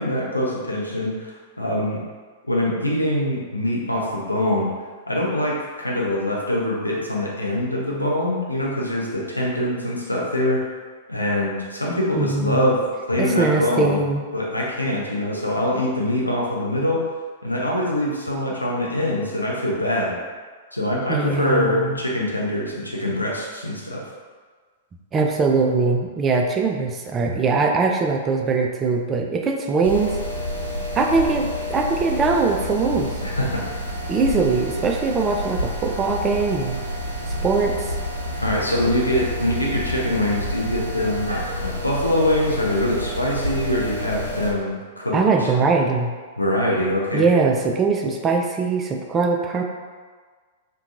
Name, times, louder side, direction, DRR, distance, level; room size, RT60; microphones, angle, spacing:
voice 1, 0.0-2.0 2.5-4.7 5.1-10.6 11.1-12.8 13.1-14.0 14.3-17.0 17.4-20.2 20.7-24.0 33.2-33.6 38.4-45.7 46.4-47.2, left 1 dB, 85° left, -4 dB, 0.5 m, -24 dB
voice 2, 12.2-12.7 13.2-14.2 21.1-22.0 25.1-30.1 30.9-33.1 34.1-36.8 37.4-37.7 45.1-46.1 47.1-49.6, right 4 dB, 20° right, 1 dB, 0.3 m, -21 dB
sound 1, 29.8-44.5, equal, 80° right, 0.5 m, -29 dB
2.8 x 2.2 x 2.4 m, 1.5 s
figure-of-eight pair, 100°, 0 cm